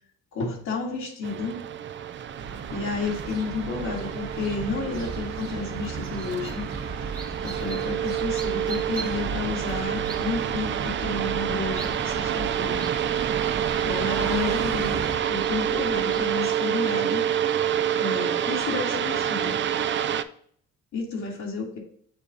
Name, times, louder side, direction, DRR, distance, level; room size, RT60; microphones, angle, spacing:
voice 1, 0.3-1.6 2.7-6.6 7.4-12.9 13.8-15.0 15.3-17.5 18.0-19.6 20.9-21.8, left 4 dB, 70° left, -2 dB, 1.8 m, -31 dB
sound 1, 1.2-20.2, right 10 dB, 40° right, 0.4 m, -28 dB
sound 2, 2.4-15.2, right 5 dB, 60° right, 1.2 m, -35 dB
sound 3, 6.0-16.4, right 3 dB, 15° right, 0.9 m, -44 dB
7.1 x 2.5 x 5.4 m, 0.62 s
cardioid pair, 90°, 30 cm